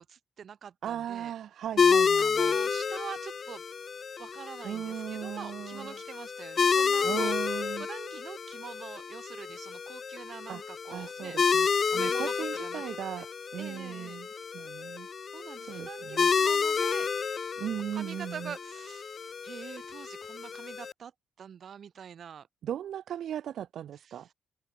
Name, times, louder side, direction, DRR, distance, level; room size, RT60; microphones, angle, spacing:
voice 1, 0.0-1.3 2.2-3.6 4.2-7.4 7.8-11.4 11.8-12.8 13.6-14.2 15.3-17.1 17.9-21.1 21.4-22.5 24.0-24.3, right 8 dB, 50° right, 2.1 m, -45 dB
voice 2, 0.8-2.5 4.6-6.0 7.0-7.9 10.5-10.6 10.9-14.3 14.5-15.1 15.6-16.3 17.6-18.5 22.6-24.3, right 10 dB, 65° right, 1.4 m, -37 dB
sound 1, 1.8-20.9, left 6 dB, 35° left, 1.8 m, -30 dB
cardioid pair, 125°, 0 cm